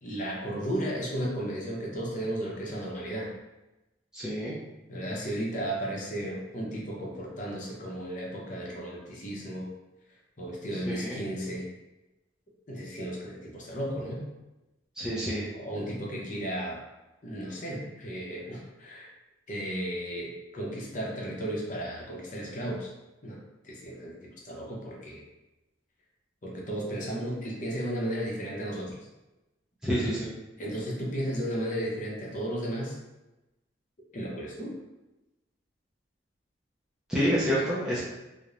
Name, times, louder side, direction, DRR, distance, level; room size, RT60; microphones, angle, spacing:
voice 1, 0.0-3.3 4.9-9.7 10.4-11.7 12.7-14.3 15.5-16.8 17.2-19.1 19.5-22.9 23.2-23.4 23.6-25.2 26.4-28.9 30.6-33.0 34.1-34.8, right 1 dB, 45° left, -3 dB, 0.6 m, -34 dB
voice 2, 4.1-4.5 10.9-11.2 15.0-15.5 29.8-30.3 37.1-38.0, equal, 5° right, -9 dB, 0.5 m, -28 dB
3.0 x 2.1 x 2.4 m, 1.0 s
head